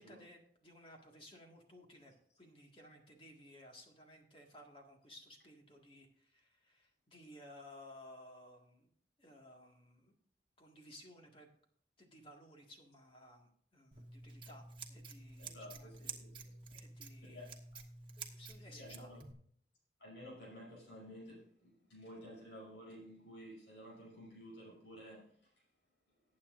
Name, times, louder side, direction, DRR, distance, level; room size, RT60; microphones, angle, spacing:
voice 1, 0.0-8.9 9.2-10.1 10.6-11.5 12.0-16.3 16.7-17.4 18.2-19.1, left 1 dB, 30° left, 1 dB, 1.8 m, -58 dB
Scissors, 13.9-19.3, right 4 dB, 30° right, 1.1 m, -50 dB
voice 2, 15.4-16.5 17.2-17.5 18.7-19.2 20.0-25.6, equal, 90° left, -4 dB, 5.8 m, -53 dB
19.5 x 8.6 x 2.5 m, 0.63 s
head